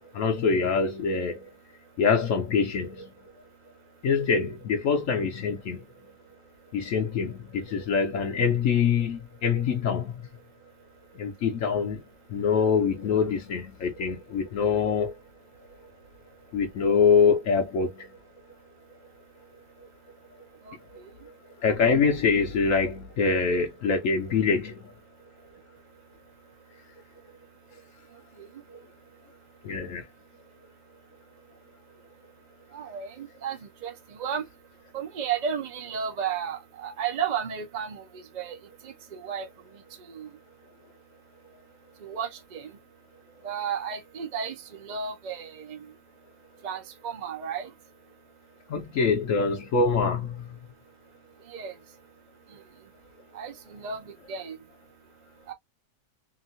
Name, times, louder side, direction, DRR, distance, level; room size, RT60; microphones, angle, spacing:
voice 1, 0.1-1.4 2.0-3.1 4.0-5.8 6.7-10.1 11.2-12.0 12.3-15.1 16.5-18.1 21.6-24.7 29.6-30.0 48.7-50.4, left 5 dB, 70° left, 1.0 m, -24 dB
voice 2, 32.7-33.9 34.2-34.4 34.9-38.0 38.3-38.6 38.8-39.5 40.1-40.3 42.0-42.7 43.4-45.9 46.6-47.7 51.5-51.7 53.3-54.0 54.3-54.6 55.5-55.6, right 7 dB, 60° right, 0.4 m, -33 dB
2.9 x 2.5 x 2.6 m
omnidirectional pair, 1.4 m